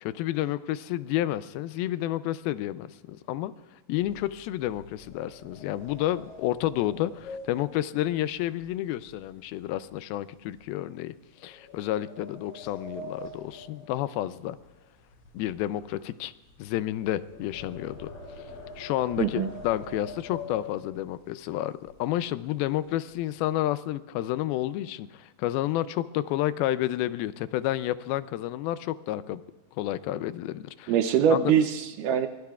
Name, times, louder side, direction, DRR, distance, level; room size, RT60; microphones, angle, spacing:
voice 1, 0.0-3.5 3.9-11.1 11.4-14.6 15.3-16.3 16.6-18.1 18.8-29.4 29.8-30.9 31.3-31.5, left 14 dB, 90° left, 14 dB, 2.5 m, -30 dB
sound 1, 3.9-9.3 9.6-9.9 10.4-10.6 11.4-14.7 15.0-21.2 21.8-21.9 22.2-22.5 22.8-23.5, left 2 dB, 55° left, 5.0 m, -45 dB
voice 2, 19.2-19.5 30.9-32.3, right 8 dB, 75° right, 8 dB, 2.0 m, -23 dB
24.0 x 21.0 x 2.4 m, 1.2 s
omnidirectional pair, 4.2 m